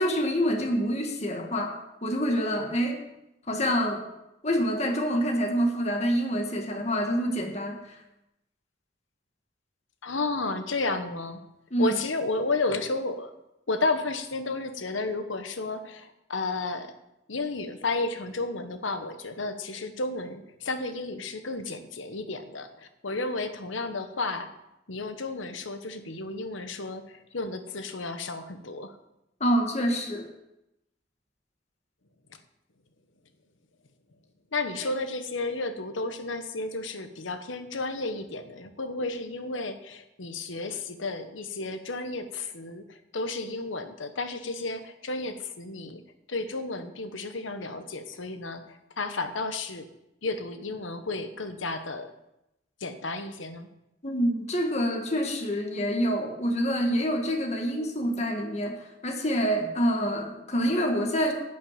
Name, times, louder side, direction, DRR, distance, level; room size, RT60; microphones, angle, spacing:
voice 1, 0.0-3.0 3.5-4.0 4.4-7.8 11.7-11.9 29.4-30.3 54.0-61.3, equal, 35° left, 3 dB, 1.6 m, -26 dB
voice 2, 10.0-11.4 11.8-13.3 13.7-16.9 17.3-24.5 24.9-29.0 34.5-46.0 46.3-49.9 50.2-52.1 52.8-53.7, left 3 dB, 85° left, 8 dB, 1.1 m, -32 dB
11.5 x 6.2 x 8.8 m, 0.89 s
head